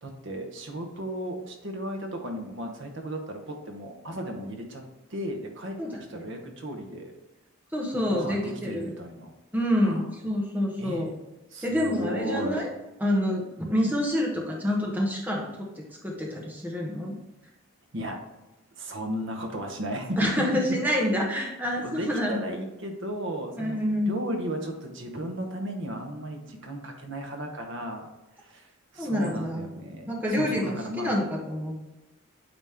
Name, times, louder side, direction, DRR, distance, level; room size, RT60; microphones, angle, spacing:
voice 1, 0.0-4.8 5.1-5.8 6.1-7.1 7.9-9.3 9.8-10.0 10.8-11.1 11.5-12.6 17.9-18.2 18.8-20.2 21.1-21.5 21.8-28.1 28.4-31.1, right 1 dB, 60° right, 3 dB, 1.1 m, -35 dB
voice 2, 5.8-6.3 7.7-8.9 9.5-11.1 11.6-12.7 13.0-15.7 16.0-17.1 20.2-22.4 23.6-24.1 29.0-29.7 30.1-31.8, equal, 10° right, -2 dB, 1.1 m, -27 dB
9.1 x 3.1 x 3.6 m, 1.0 s
head